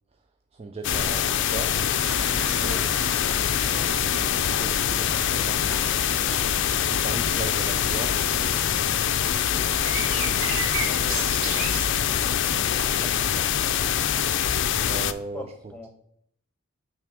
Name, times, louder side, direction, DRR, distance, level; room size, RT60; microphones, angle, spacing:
voice 1, 0.5-1.8 2.2-3.1 3.7-6.2 6.9-8.6 10.0-12.3 12.9-13.2 14.9-15.5, right 3 dB, 30° right, 6 dB, 0.4 m, -39 dB
sound 1, 0.8-15.1, left 9 dB, 60° left, 0.4 m, -24 dB
sound 2, 1.9-13.4, right 2 dB, 80° right, 1.8 m, -36 dB
voice 2, 15.3-15.9, left 1 dB, 5° left, 4 dB, 1.2 m, -43 dB
8.9 x 3.3 x 6.2 m, 0.69 s
head